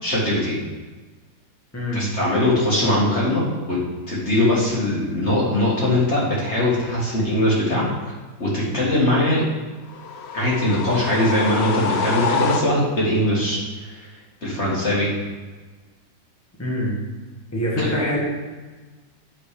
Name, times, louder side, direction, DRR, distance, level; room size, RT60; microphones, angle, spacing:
voice 1, 0.0-0.6 1.9-3.8 4.1-7.9 8.4-9.4 10.3-15.1 17.8-17.9, left 1 dB, 40° left, -5 dB, 1.8 m, -21 dB
voice 2, 1.7-2.1 16.6-16.9 17.5-18.2, left 1 dB, 10° left, -5 dB, 1.5 m, -24 dB
sound 1, 9.9-13.1, left 5 dB, 80° left, 0.5 m, -26 dB
9.1 x 4.0 x 4.9 m, 1.3 s
omnidirectional pair, 2.0 m